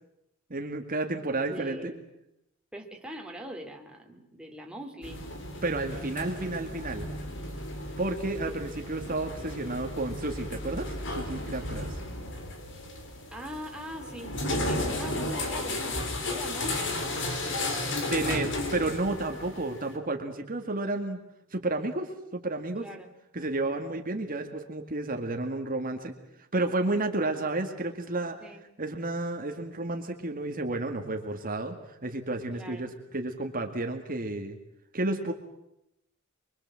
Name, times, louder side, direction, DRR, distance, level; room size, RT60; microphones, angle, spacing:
voice 1, 0.5-1.9 5.6-7.1 8.0-12.0 18.1-21.2 21.5-22.9 23.3-26.1 26.5-28.4 28.8-34.6 34.9-35.3, right 2 dB, 40° right, 4 dB, 2.1 m, -31 dB
voice 2, 1.5-2.1 2.7-5.2 13.3-14.3 14.6-18.6 22.8-23.1 28.4-28.6 32.5-32.9, equal, 5° right, 1 dB, 2.9 m, -42 dB
sound 1, 5.0-20.0, left 1 dB, 60° left, 4.0 m, -34 dB
24.5 x 24.0 x 7.6 m, 0.83 s
head